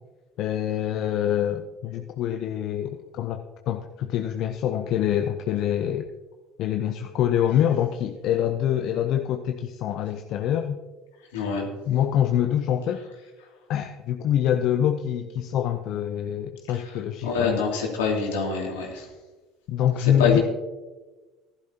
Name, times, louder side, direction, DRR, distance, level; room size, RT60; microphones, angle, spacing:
voice 1, 0.4-6.1 6.6-10.8 11.9-13.0 13.7-17.6 19.7-20.4, left 10 dB, 60° left, 6 dB, 0.7 m, -25 dB
voice 2, 11.3-11.7 16.7-16.9 17.2-19.1 20.0-20.4, left 5 dB, 85° left, -1 dB, 2.7 m, -25 dB
15.0 x 11.0 x 2.9 m, 1.2 s
hypercardioid pair, 75°, 0 cm